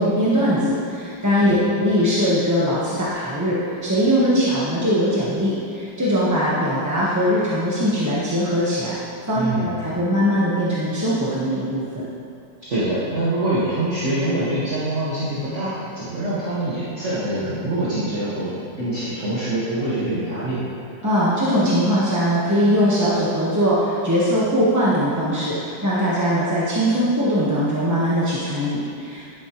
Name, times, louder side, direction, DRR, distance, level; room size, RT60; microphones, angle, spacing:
voice 1, 0.0-8.9 9.3-12.0 21.0-29.2, equal, 15° right, -9 dB, 0.8 m, -21 dB
voice 2, 9.3-9.7 12.6-20.7, right 1 dB, 40° right, -10 dB, 1.7 m, -25 dB
10.5 x 8.7 x 3.0 m, 2.5 s
omnidirectional pair, 2.0 m